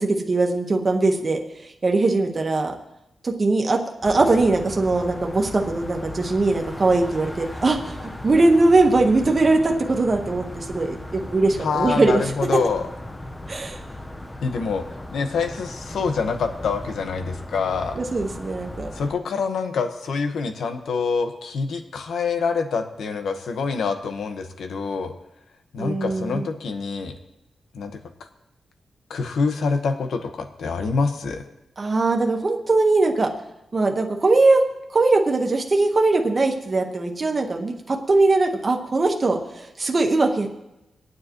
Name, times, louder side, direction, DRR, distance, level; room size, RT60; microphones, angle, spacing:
voice 1, 0.0-2.7 3.2-12.2 13.5-13.8 17.9-18.9 25.8-26.4 31.8-33.3 33.7-34.6 34.9-40.5, right 3 dB, 25° right, 2 dB, 1.3 m, -21 dB
sound 1, 4.0-19.1, left 1 dB, 10° left, 0.8 m, -37 dB
voice 2, 11.6-12.9 14.4-14.8 15.1-18.0 18.9-25.1 25.7-27.1 27.7-28.0 29.1-31.4, left 5 dB, 85° left, 6 dB, 1.3 m, -26 dB
27.5 x 9.4 x 3.1 m, 0.92 s
wide cardioid pair, 180°, 0 cm